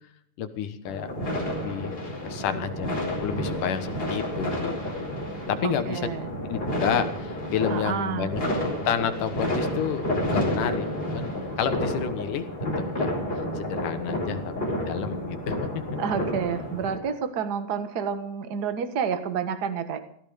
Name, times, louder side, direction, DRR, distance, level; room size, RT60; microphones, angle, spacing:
voice 1, 0.4-1.1 1.4-5.2 5.5-6.0 6.4-8.4 8.9-11.3 11.6-12.5 12.8-13.2 13.6-15.8, left 8 dB, 75° left, 9 dB, 2.8 m, -30 dB
sound 1, 0.8-17.0, equal, 15° left, 4.7 m, -30 dB
voice 2, 5.6-6.3 7.7-8.3 16.0-20.0, right 7 dB, 50° right, 9 dB, 1.2 m, -29 dB
16.5 x 14.0 x 5.1 m, 0.67 s
omnidirectional pair, 3.8 m